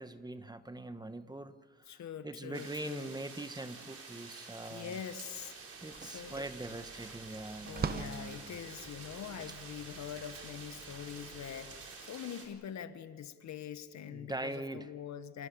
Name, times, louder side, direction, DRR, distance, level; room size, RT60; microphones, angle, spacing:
voice 1, 0.0-1.5 1.9-5.0 5.8-8.6 14.0-14.9, right 2 dB, 15° right, 10 dB, 1.3 m, -42 dB
voice 2, 1.9-3.1 4.7-5.5 6.0-6.4 7.6-15.5, left 9 dB, 65° left, 11 dB, 1.5 m, -44 dB
sound 1, 2.5-12.5, right 4 dB, 50° right, 5.3 m, -49 dB
sound 2, 5.3-11.7, right 5 dB, 30° right, 1.0 m, -44 dB
sound 3, 6.1-11.9, right 4 dB, 80° right, 4.9 m, -58 dB
28.0 x 19.0 x 7.0 m, 1.5 s
cardioid pair, 90°, 30 cm